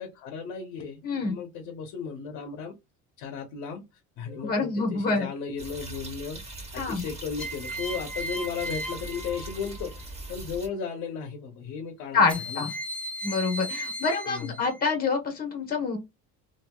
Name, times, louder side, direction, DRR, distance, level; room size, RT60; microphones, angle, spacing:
voice 1, 0.0-2.7 3.2-3.8 4.2-6.4 6.7-12.6 14.3-14.6, left 6 dB, 70° left, 0.9 m, -35 dB
voice 2, 1.0-1.4 4.4-5.3 6.7-7.1 12.1-12.7 13.2-16.0, left 4 dB, 30° left, 1.0 m, -26 dB
sound 1, 4.3-4.9 7.4-10.0 12.3-14.9, equal, 5° left, 0.3 m, -37 dB
sound 2, 5.6-10.7, right 2 dB, 20° right, 1.1 m, -41 dB
2.9 x 2.8 x 2.3 m
cardioid pair, 125°, 32 cm